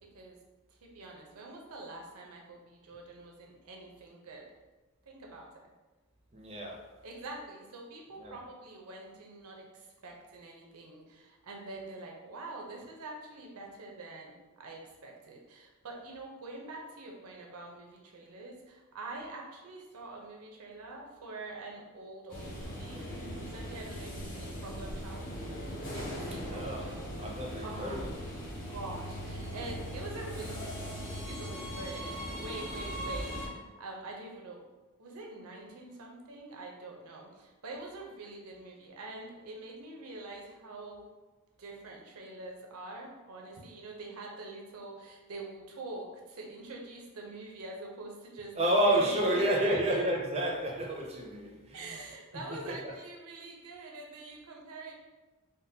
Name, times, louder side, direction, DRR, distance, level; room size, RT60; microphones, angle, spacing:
voice 1, 0.7-4.5 5.0-5.5 7.0-23.1 23.3-25.3 25.9-27.4 27.6-34.6 35.0-41.1 41.6-50.0 51.7-54.9, right 2 dB, 80° right, 0 dB, 0.6 m, -45 dB
voice 2, 6.3-6.8 8.2-8.4 26.5-26.9 27.2-28.1 48.6-52.0 52.7-52.9, right 1 dB, 30° right, 0 dB, 0.4 m, -30 dB
sound 1, 22.3-33.5, equal, 40° left, 0.8 m, -39 dB
3.6 x 2.1 x 2.7 m, 1.2 s
head